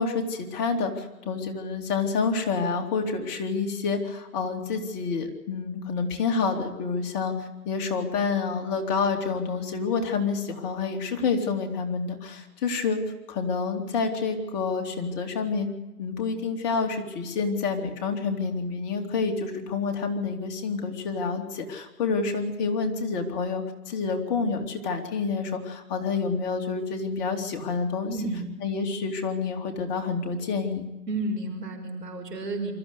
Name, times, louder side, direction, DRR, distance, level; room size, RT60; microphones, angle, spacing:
voice 1, 0.0-13.0 13.3-15.7 16.0-28.1 28.6-30.8, left 4 dB, 30° left, 3 dB, 3.0 m, -28 dB
voice 2, 28.1-28.6 31.1-32.7, right 2 dB, 75° right, 5 dB, 5.9 m, -31 dB
24.5 x 14.5 x 8.2 m, 1.0 s
hypercardioid pair, 135°, 48 cm